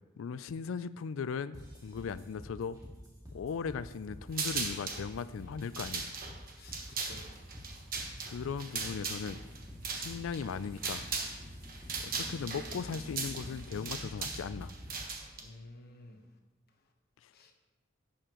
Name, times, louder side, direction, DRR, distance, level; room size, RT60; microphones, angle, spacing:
voice 1, 0.2-2.8 3.3-6.2 8.2-9.4 9.9-11.1 12.0-14.7 17.2-17.3, left 6 dB, 75° left, 0.4 m, -38 dB
sound 1, 1.5-15.1, equal, 20° right, 2.2 m, -48 dB
sound 2, 4.3-5.0 5.6-11.4 11.6-15.4, right 4 dB, 50° right, 1.2 m, -38 dB
voice 2, 6.6-7.2 15.4-16.2 17.3-17.5, left 2 dB, 50° left, 1.1 m, -52 dB
sound 3, 7.2-12.5, equal, 85° right, 3.6 m, -55 dB
11.0 x 8.9 x 3.0 m
head